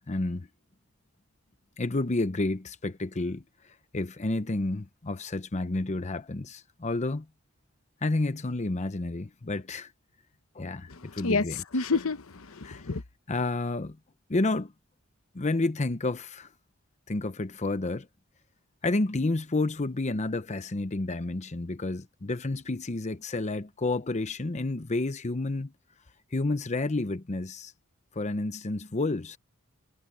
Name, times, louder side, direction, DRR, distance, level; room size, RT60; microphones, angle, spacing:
voice 1, 0.1-0.5 1.8-7.3 8.0-9.9 10.5-11.6 12.6-12.9 13.3-14.0 14.3-14.7 15.3-16.5 17.1-18.1 18.8-25.7 26.3-27.7 28.1-29.4, left 2 dB, 35° left, 0.7 m, -30 dB
voice 2, 10.9-13.0, left 4 dB, 75° left, 1.0 m, -29 dB
head